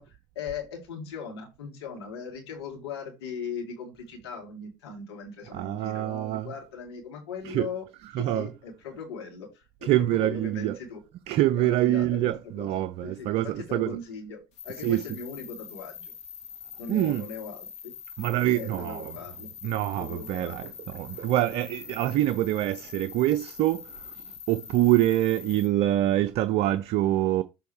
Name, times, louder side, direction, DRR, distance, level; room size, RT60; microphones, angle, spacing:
voice 1, 0.0-7.8 8.1-11.0 11.6-12.7 13.0-16.1 16.8-17.9 18.5-19.5 19.9-20.7, left 5 dB, 80° left, 2.5 m, -39 dB
voice 2, 5.5-6.5 7.4-7.7 8.1-8.5 9.8-10.8 11.3-14.0 14.8-15.0 16.9-17.2 18.2-19.1 19.6-27.4, right 14 dB, 55° right, 0.5 m, -25 dB
sound 1, 14.5-25.7, left 7 dB, 55° left, 1.9 m, -44 dB
6.9 x 3.5 x 4.6 m
hypercardioid pair, 65°, 13 cm